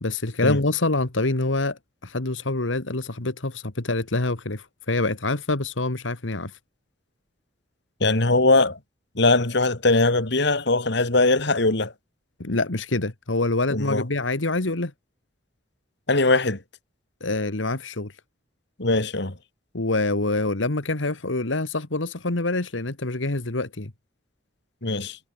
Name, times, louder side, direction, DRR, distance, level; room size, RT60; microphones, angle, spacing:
voice 1, 0.0-6.6 12.4-14.9 17.2-18.2 19.7-23.9, left 2 dB, 85° left, 2.0 m, -26 dB
voice 2, 8.0-8.8 9.2-11.9 13.7-14.0 16.1-16.6 18.8-19.3 24.8-25.2, left 2 dB, 65° left, 2.8 m, -21 dB
head